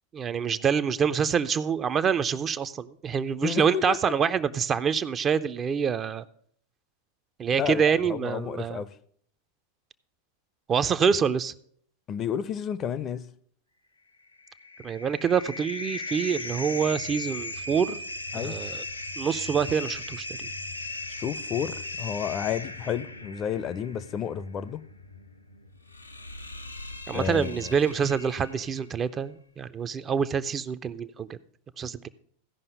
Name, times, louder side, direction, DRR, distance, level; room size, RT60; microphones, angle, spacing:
voice 1, 0.1-6.2 7.4-8.8 10.7-11.5 14.8-18.0 18.3-18.8 19.2-20.5 27.1-31.4 31.8-32.1, right 7 dB, 25° right, 0.4 m, -26 dB
voice 2, 3.4-4.1 7.6-8.9 12.1-13.3 18.3-18.6 21.1-24.8 27.1-27.8, left 8 dB, 30° left, 0.5 m, -31 dB
sound 1, 14.3-28.9, left 2 dB, 85° left, 0.6 m, -38 dB
15.5 x 5.5 x 5.2 m
figure-of-eight pair, 90°, 0 cm